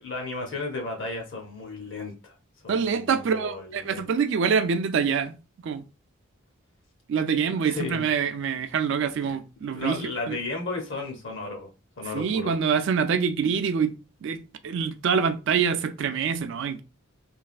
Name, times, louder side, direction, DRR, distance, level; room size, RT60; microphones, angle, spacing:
voice 1, 0.0-2.3 2.6-4.1 7.7-8.1 9.3-11.7 12.0-12.6, left 3 dB, 55° left, 0.7 m, -34 dB
voice 2, 2.7-5.4 5.6-5.8 7.1-10.0 10.3-10.4 12.1-13.9 14.2-16.8, right 6 dB, 55° right, 0.3 m, -25 dB
3.2 x 2.3 x 2.4 m
head